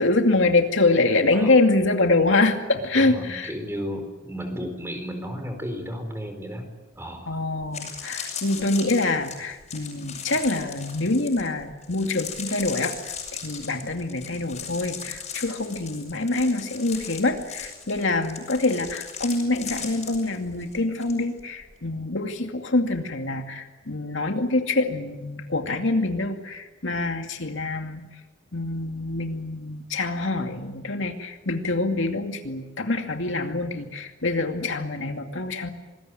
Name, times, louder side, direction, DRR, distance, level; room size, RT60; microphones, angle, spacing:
voice 1, 0.0-3.5 7.3-28.1 28.5-35.7, left 2 dB, 70° left, 4 dB, 2.4 m, -25 dB
voice 2, 2.9-6.6 6.9-7.4, equal, 10° right, 6 dB, 4.5 m, -33 dB
sound 1, 7.6-21.1 21.4-21.7, left 7 dB, 35° left, 7.2 m, -37 dB
26.5 x 20.5 x 9.2 m, 1.1 s
head